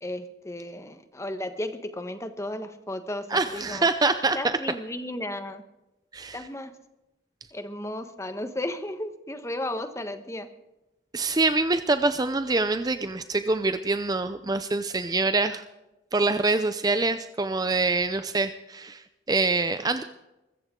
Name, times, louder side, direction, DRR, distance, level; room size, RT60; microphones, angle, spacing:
voice 1, 0.0-3.9 4.3-5.6 6.3-6.7 7.5-10.5, left 1 dB, 15° left, 9 dB, 1.2 m, -34 dB
voice 2, 3.3-4.5 6.1-6.4 11.1-15.6 16.1-19.0 19.3-20.0, right 3 dB, 20° right, 10 dB, 0.5 m, -25 dB
23.0 x 14.5 x 3.8 m, 0.98 s
head